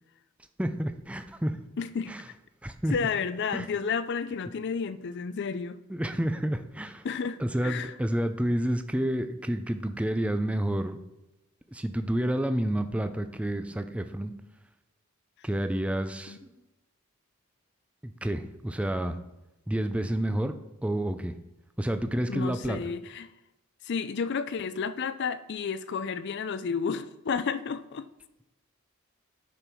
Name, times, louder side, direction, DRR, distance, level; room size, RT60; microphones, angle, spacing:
voice 1, 0.6-1.6 2.1-2.2 2.6-2.9 3.5-3.7 5.9-7.0 7.4-11.0 11.7-14.3 15.4-16.4 18.0-19.2 19.7-20.5 20.8-21.3 21.8-22.8, right 1 dB, 5° right, 0.4 m, -29 dB
voice 2, 1.8-2.3 2.9-5.8 7.0-7.9 15.4-15.5 16.3-16.4 22.3-23.3 23.8-28.1, left 5 dB, 50° left, 0.4 m, -31 dB
10.0 x 5.9 x 4.6 m
head